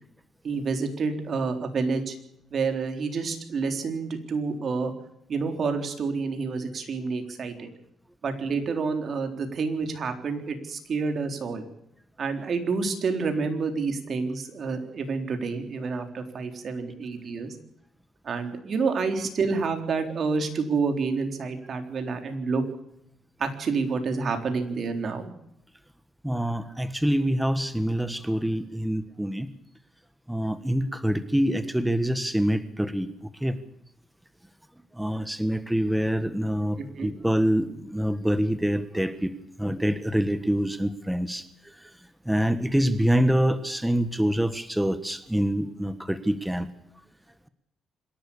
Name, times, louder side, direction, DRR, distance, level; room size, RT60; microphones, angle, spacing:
voice 1, 0.4-2.2 2.5-4.9 5.3-7.7 8.2-11.6 12.2-17.6 18.2-22.6 23.4-25.3 36.8-37.1, right 4 dB, 50° right, 5 dB, 3.9 m, -28 dB
voice 2, 26.2-29.5 30.3-33.6 34.9-41.9 42.2-46.7, equal, 5° right, 11 dB, 1.4 m, -26 dB
26.0 x 11.5 x 8.7 m, 0.77 s
cardioid pair, 90°, 0 cm